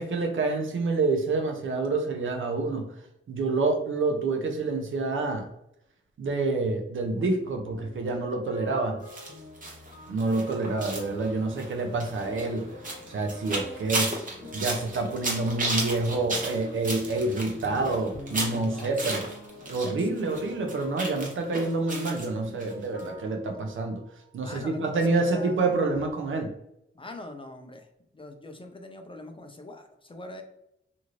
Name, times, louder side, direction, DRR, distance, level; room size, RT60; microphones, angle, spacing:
voice 1, 0.0-2.9 3.3-5.5 6.2-9.0 10.1-12.7 13.1-14.1 14.5-19.2 19.7-24.0 24.3-26.5, right 3 dB, 70° right, 4 dB, 0.6 m, -27 dB
sound 1, 7.2-26.1, left 2 dB, 50° left, 1.0 m, -47 dB
sound 2, 9.1-19.9 20.2-22.3 22.6-22.7 23.0-23.1, right 2 dB, 40° right, 0.9 m, -34 dB
voice 2, 19.6-20.3 24.4-25.0 25.3-25.6 26.9-27.9 28.1-30.4, left 2 dB, 25° left, 5 dB, 0.5 m, -43 dB
2.6 x 2.5 x 3.0 m, 0.81 s
cardioid pair, 70°, 21 cm